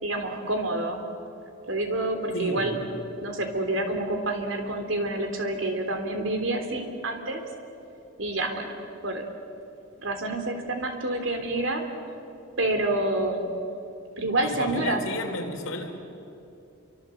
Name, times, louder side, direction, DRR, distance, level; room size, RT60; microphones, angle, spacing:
voice 1, 0.0-1.0 1.7-2.8 3.2-7.4 8.2-8.8 9.0-9.2 10.0-11.8 12.6-13.6 14.2-15.0, right 2 dB, 65° right, 5 dB, 3.4 m, -28 dB
voice 2, 2.3-2.8 3.7-3.9 14.4-15.9, left 1 dB, 70° left, 3 dB, 3.9 m, -33 dB
29.5 x 24.5 x 7.8 m, 2.7 s
head